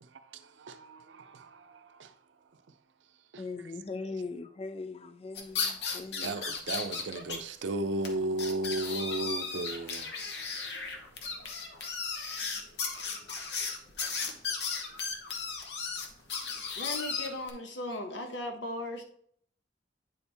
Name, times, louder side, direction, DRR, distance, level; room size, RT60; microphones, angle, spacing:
voice 1, 0.0-2.1 3.3-3.7 6.2-10.1, right 2 dB, 85° right, 0.5 m, -35 dB
voice 2, 3.4-6.5, left 3 dB, 35° left, 0.4 m, -40 dB
sound 1, 5.3-7.4 7.7-7.8 8.0-8.1 8.4-17.5, left 5 dB, 65° left, 1.0 m, -35 dB
voice 3, 16.8-19.0, left 1 dB, 90° left, 1.1 m, -37 dB
9.0 x 4.4 x 3.4 m
head